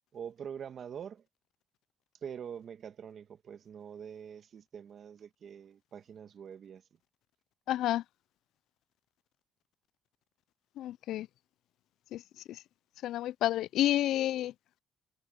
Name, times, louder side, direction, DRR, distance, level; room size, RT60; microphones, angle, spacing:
voice 1, 0.1-1.3 2.2-6.8, right 8 dB, 60° right, 1.8 m, -45 dB
voice 2, 7.7-8.0 10.8-11.3 12.1-12.2 13.0-14.5, left 13 dB, 85° left, 0.3 m, -29 dB
cardioid pair, 90°, 0 cm